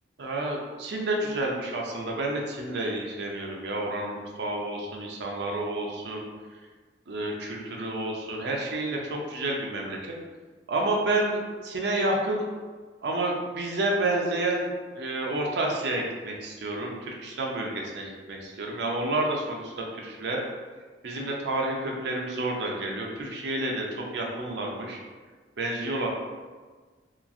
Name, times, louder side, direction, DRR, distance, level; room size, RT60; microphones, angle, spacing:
voice 1, 0.2-6.3 7.1-10.2 10.7-12.5 13.0-20.4 21.0-25.0 25.6-26.1, right 2 dB, 65° right, 0 dB, 0.5 m, -30 dB
2.9 x 2.4 x 2.5 m, 1.4 s
head